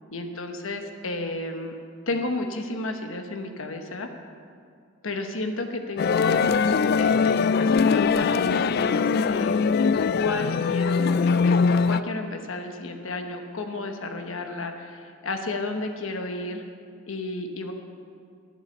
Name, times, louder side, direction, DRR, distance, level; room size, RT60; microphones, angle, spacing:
voice 1, 0.1-1.7 2.1-4.1 5.0-6.7 7.0-9.7 10.1-16.6 17.1-17.7, left 2 dB, 85° left, 5 dB, 1.0 m, -32 dB
sound 1, 6.0-12.0, left 5 dB, 50° left, 0.3 m, -21 dB
12.0 x 8.6 x 6.9 m, 2.3 s
head